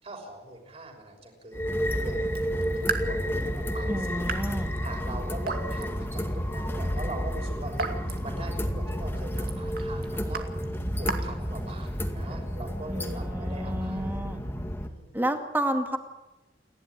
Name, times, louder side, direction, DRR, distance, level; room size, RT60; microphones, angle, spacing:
voice 1, 0.0-14.2 14.8-15.1, right 1 dB, 35° right, 2 dB, 6.0 m, -42 dB
sound 1, 1.5-14.9, equal, 15° left, 2.1 m, -31 dB
Raindrop / Drip, 2.2-12.1, right 4 dB, 60° right, 2.4 m, -39 dB
voice 2, 3.9-4.7 12.9-14.4 15.1-16.0, right 1 dB, 10° right, 5 dB, 2.3 m, -30 dB
29.5 x 12.0 x 10.0 m, 1.1 s
head